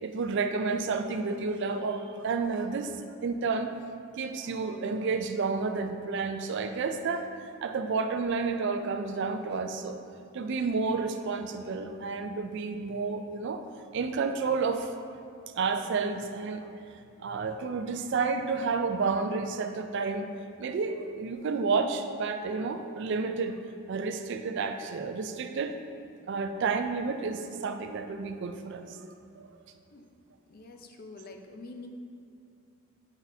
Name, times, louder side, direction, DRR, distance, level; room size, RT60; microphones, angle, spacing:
voice 1, 0.0-3.0 3.2-3.7 4.2-10.0 10.3-13.6 13.9-14.9 15.6-16.8 17.2-20.3 20.6-23.5 23.9-25.7 26.3-29.5, right 4 dB, 55° right, 7 dB, 0.3 m, -31 dB
voice 2, 30.4-31.9, left 3 dB, 40° left, 4 dB, 0.4 m, -46 dB
8.9 x 4.0 x 2.7 m, 2.6 s
head